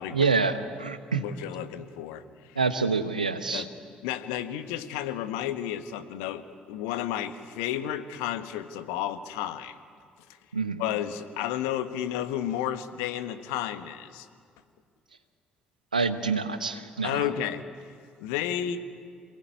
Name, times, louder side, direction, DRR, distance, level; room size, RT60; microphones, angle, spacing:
voice 1, 0.1-1.2 2.6-3.6 10.5-10.8 15.9-17.2, right 4 dB, 85° right, 11 dB, 1.0 m, -27 dB
voice 2, 1.2-2.2 3.5-3.7 4.0-9.7 10.8-14.3 17.0-17.6 18.2-18.8, left 11 dB, 70° left, 10 dB, 1.3 m, -32 dB
28.0 x 19.0 x 9.5 m, 2.1 s
figure-of-eight pair, 45°, 4 cm